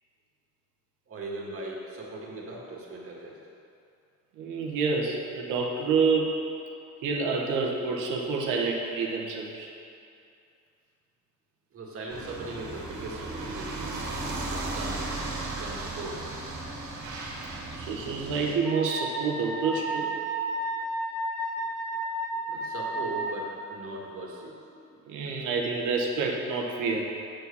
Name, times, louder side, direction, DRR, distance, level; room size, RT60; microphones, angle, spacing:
voice 1, 1.1-3.4 11.7-13.8 14.5-15.0 15.6-16.3 22.4-25.3, right 2 dB, 45° right, -2 dB, 1.9 m, -39 dB
voice 2, 4.4-6.4 7.0-9.7 17.7-20.1 25.1-27.2, right 4 dB, 85° right, 0 dB, 1.2 m, -28 dB
sound 1, 12.1-18.5, right 2 dB, 70° right, 1.8 m, -35 dB
Wind instrument woodwind instrument, 18.6-23.5, right 1 dB, 5° left, 2.0 m, -32 dB
7.7 x 4.8 x 6.9 m, 2.5 s
cardioid pair, 95°, 30 cm